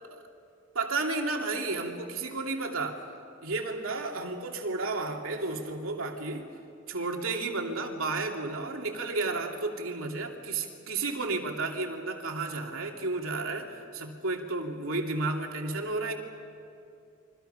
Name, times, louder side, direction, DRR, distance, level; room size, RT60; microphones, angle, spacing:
voice 1, 0.7-3.1 3.4-6.5 6.9-16.1, right 3 dB, 85° right, 2 dB, 2.7 m, -32 dB
29.5 x 24.0 x 5.7 m, 2.5 s
head